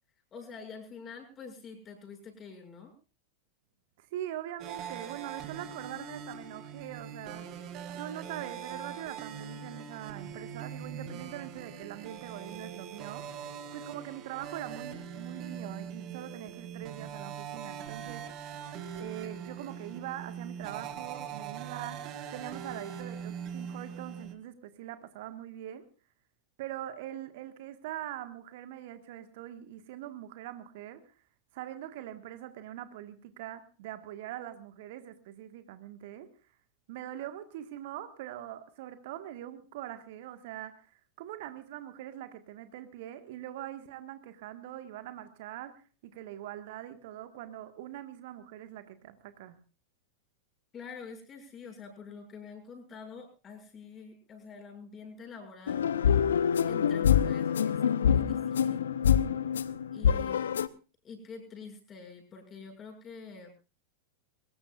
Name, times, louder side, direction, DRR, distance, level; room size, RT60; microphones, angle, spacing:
voice 1, 0.3-2.9 50.7-55.8 56.7-58.9 59.9-60.5 61.0-63.5, left 5 dB, 25° left, 4 dB, 6.9 m, -46 dB
voice 2, 4.0-7.7 7.9-13.4 13.7-18.2 19.0-25.9 26.6-31.0 31.5-36.3 36.9-49.6, right 12 dB, 50° right, 10 dB, 1.7 m, -43 dB
sound 1, 4.6-24.3, right 8 dB, 35° right, 2.4 m, -42 dB
sound 2, 55.7-60.7, left 8 dB, 65° left, 0.8 m, -26 dB
23.5 x 20.5 x 2.5 m, 0.33 s
figure-of-eight pair, 90°, 0 cm